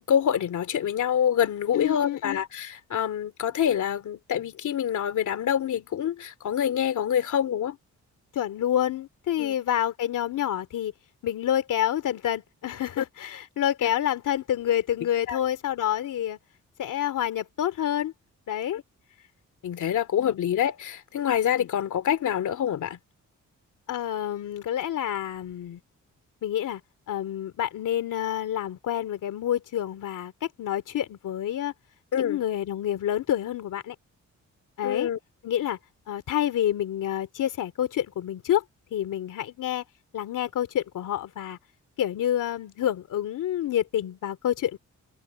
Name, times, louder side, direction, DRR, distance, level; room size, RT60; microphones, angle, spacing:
voice 1, 0.0-7.8 9.4-9.5 13.0-13.1 13.8-13.9 15.3-15.4 18.7-18.8 19.6-23.0 32.1-32.4 34.8-35.2, left 9 dB, 70° left, 2.7 m, -26 dB
voice 2, 1.7-2.4 8.3-10.9 11.2-16.4 16.8-18.1 18.5-18.8 20.2-20.4 21.5-21.7 23.9-25.8 26.4-26.8 27.1-31.7 32.1-33.9 34.8-35.1 35.4-35.8 36.1-38.6 38.9-39.8 40.1-41.6 42.0-44.8, left 11 dB, 90° left, 2.7 m, -28 dB
wide cardioid pair, 135°, 30 cm